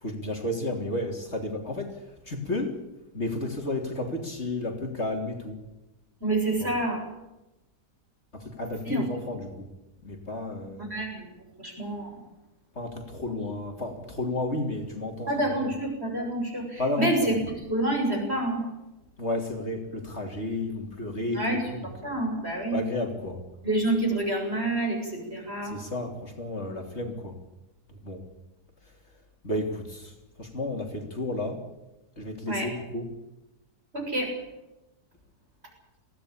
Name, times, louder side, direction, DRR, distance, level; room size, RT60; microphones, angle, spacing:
voice 1, 0.0-2.0 2.3-2.8 3.1-5.6 6.6-6.7 8.3-9.7 10.0-10.9 12.8-15.7 16.8-17.4 19.2-21.9 22.7-23.4 25.7-27.4 28.0-28.2 29.4-30.1 30.4-31.6 32.2-33.1, left 2 dB, 40° left, 3 dB, 3.5 m, -32 dB
voice 2, 6.2-7.0 8.9-9.0 10.8-11.3 11.6-12.2 15.3-18.6 21.3-21.6 22.0-22.8 23.6-25.8 32.5-32.7 33.9-34.3, right 1 dB, 40° right, 1 dB, 7.4 m, -28 dB
22.5 x 17.0 x 8.6 m, 0.96 s
omnidirectional pair, 1.7 m